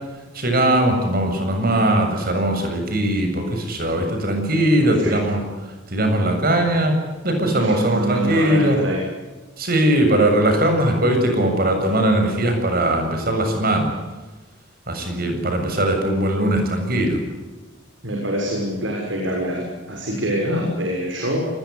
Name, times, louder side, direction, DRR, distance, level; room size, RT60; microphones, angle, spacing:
voice 1, 0.3-5.4 5.9-6.9 7.2-8.8 9.6-13.9 14.9-17.2, right 1 dB, 50° right, 4 dB, 7.3 m, -20 dB
voice 2, 4.8-5.1 7.4-9.0 18.0-21.6, equal, 80° right, 0 dB, 6.6 m, -25 dB
28.5 x 21.0 x 8.4 m, 1.2 s
head